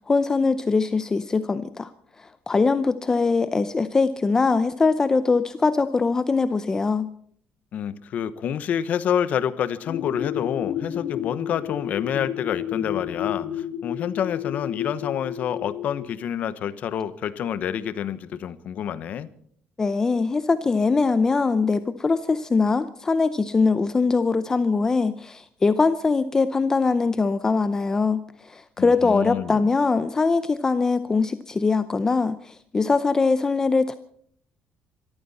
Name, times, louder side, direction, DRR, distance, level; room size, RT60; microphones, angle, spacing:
voice 1, 0.0-1.9 2.2-7.1 19.8-34.0, left 4 dB, 15° left, 12 dB, 0.6 m, -22 dB
voice 2, 7.7-19.3 28.8-29.6, left 9 dB, 45° left, 14 dB, 1.0 m, -28 dB
sound 1, 9.8-16.1, left 10 dB, 65° left, 3.0 m, -31 dB
25.0 x 13.5 x 4.2 m, 0.63 s
cardioid pair, 165°, 3 cm